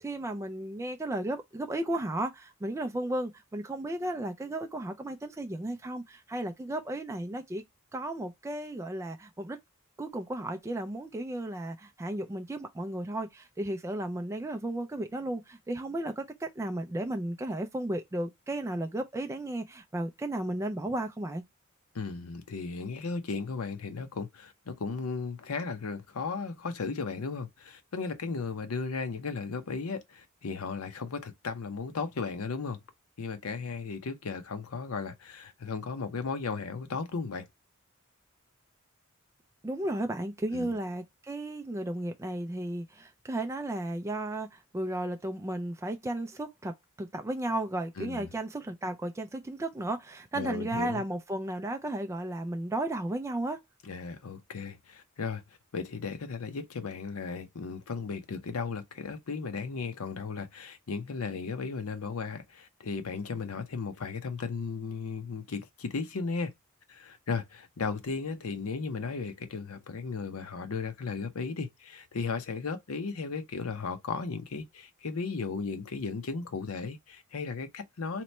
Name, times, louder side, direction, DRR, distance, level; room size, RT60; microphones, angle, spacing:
voice 1, 0.0-7.6 7.9-9.6 10.0-21.4 39.6-53.6, right 1 dB, 15° right, 0.3 m, -34 dB
voice 2, 21.9-32.8 33.2-37.5 40.5-40.7 48.0-48.3 50.3-51.0 53.8-55.4 55.7-66.5 66.9-78.2, left 4 dB, 90° left, 0.7 m, -35 dB
2.9 x 2.2 x 4.0 m
head